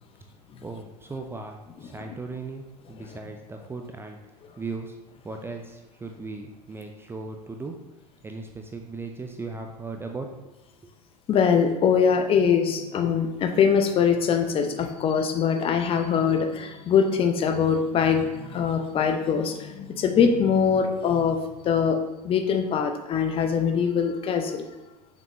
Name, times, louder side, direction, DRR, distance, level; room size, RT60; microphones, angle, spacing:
voice 1, 0.6-4.2 4.6-5.0 5.2-7.8 8.2-10.5, right 3 dB, 10° right, 3 dB, 0.5 m, -37 dB
voice 2, 11.3-22.0 22.2-24.7, left 6 dB, 25° left, 6 dB, 0.7 m, -23 dB
sound 1, 11.7-21.3, left 1 dB, 85° right, 1.1 m, -47 dB
6.9 x 5.9 x 3.0 m, 1.1 s
figure-of-eight pair, 85°, 21 cm